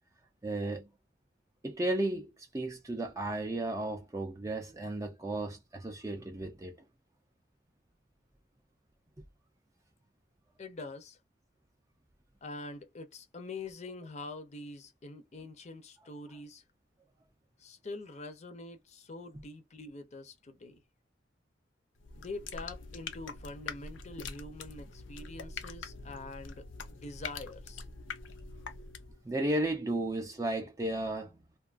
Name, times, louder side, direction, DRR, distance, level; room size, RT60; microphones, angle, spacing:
voice 1, 0.4-0.9 1.6-6.7 29.2-31.4, right 1 dB, 15° right, 0.4 m, -34 dB
voice 2, 10.6-11.2 12.4-16.6 17.6-20.8 22.2-27.8, left 2 dB, 35° left, 0.5 m, -45 dB
sound 1, 22.0-29.2, left 5 dB, 90° left, 0.5 m, -44 dB
2.6 x 2.3 x 2.4 m
head